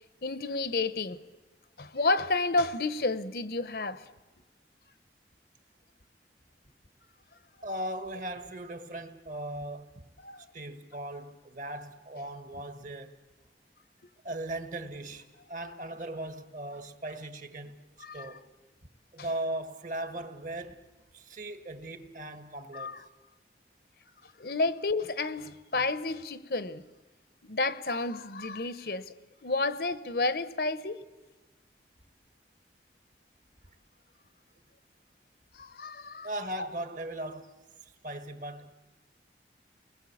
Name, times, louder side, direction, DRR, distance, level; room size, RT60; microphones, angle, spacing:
voice 1, 0.2-1.2 1.8-4.0 10.2-10.5 18.0-18.3 22.7-23.0 24.4-26.8 27.4-29.1 29.4-31.0 35.5-36.3, left 3 dB, 60° left, 0.9 m, -31 dB
voice 2, 7.6-10.0 10.5-13.1 14.2-17.8 18.1-18.4 19.1-20.9 21.1-23.0 36.2-37.5 37.8-38.7, right 1 dB, 45° right, 1.7 m, -38 dB
29.5 x 20.5 x 8.6 m
head